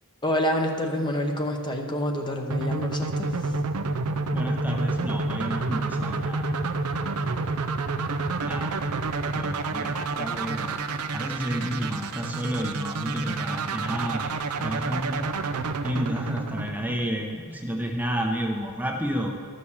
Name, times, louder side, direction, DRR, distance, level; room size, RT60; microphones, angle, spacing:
voice 1, 0.2-3.5, equal, 20° left, 3 dB, 0.8 m, -27 dB
sound 1, 2.5-17.4, right 3 dB, 80° right, 0.6 m, -29 dB
voice 2, 4.3-6.5 8.4-8.7 9.3-14.3 14.6-15.2 15.8-19.3, equal, 5° right, 1 dB, 0.7 m, -31 dB
12.5 x 6.5 x 7.1 m, 2.2 s
head